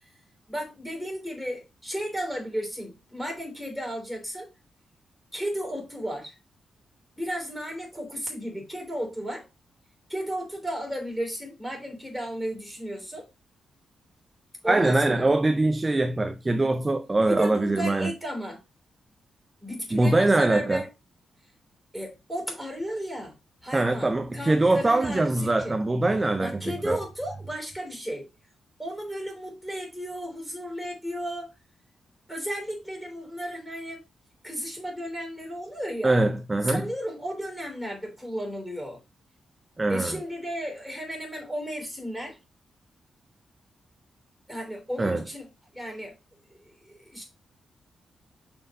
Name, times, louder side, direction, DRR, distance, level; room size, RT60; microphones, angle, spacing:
voice 1, 0.5-4.5 5.3-6.3 7.2-9.5 10.1-13.3 14.6-15.2 17.2-18.6 19.6-20.9 21.9-23.4 23.6-25.8 26.4-28.3 28.8-31.5 32.3-34.0 34.4-36.2 36.7-39.0 39.9-42.4 44.5-45.5 45.7-46.2 46.7-47.2, equal, ahead, 3.1 m, -34 dB
voice 2, 14.7-18.1 19.9-20.8 23.7-27.0 36.0-36.9 39.8-40.2 45.0-45.2, right 2 dB, 20° right, 0.5 m, -23 dB
6.3 x 4.4 x 5.0 m
wide cardioid pair, 145°, 0 cm